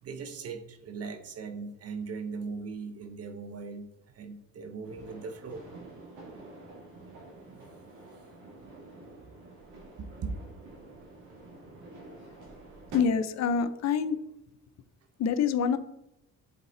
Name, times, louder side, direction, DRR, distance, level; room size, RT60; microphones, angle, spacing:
voice 1, 0.0-3.9 4.1-5.6 10.0-10.4, right 4 dB, 55° right, 7 dB, 1.0 m, -39 dB
sound 1, 4.8-13.0, right 2 dB, 80° right, 2.5 m, -48 dB
voice 2, 12.9-14.2 15.2-15.8, left 6 dB, 60° left, 12 dB, 0.6 m, -26 dB
7.0 x 4.0 x 3.9 m, 0.82 s
cardioid pair, 90°, 30 cm